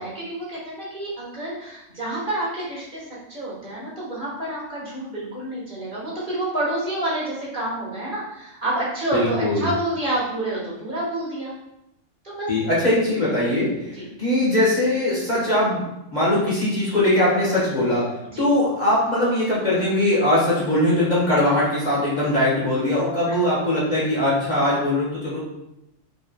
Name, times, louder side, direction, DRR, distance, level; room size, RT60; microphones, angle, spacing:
voice 1, 0.0-3.0 3.3-11.5 12.2-12.5 13.9-14.1 18.2-18.5 23.3-23.4, right 1 dB, 40° right, -7 dB, 1.5 m, -28 dB
voice 2, 9.1-9.7 12.5-15.8 16.1-18.1 18.4-25.4, left 1 dB, 35° left, -7 dB, 1.4 m, -21 dB
5.1 x 3.6 x 2.2 m, 0.85 s
omnidirectional pair, 1.3 m